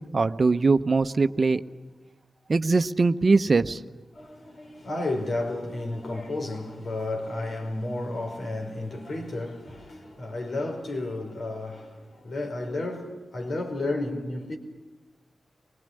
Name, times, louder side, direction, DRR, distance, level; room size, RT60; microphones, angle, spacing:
voice 1, 0.1-1.6 2.5-3.8, right 3 dB, 55° right, 0.9 m, -21 dB
voice 2, 4.1-14.6, left 2 dB, 70° left, 4.8 m, -32 dB
24.0 x 20.0 x 9.9 m
cardioid pair, 40°, 0 cm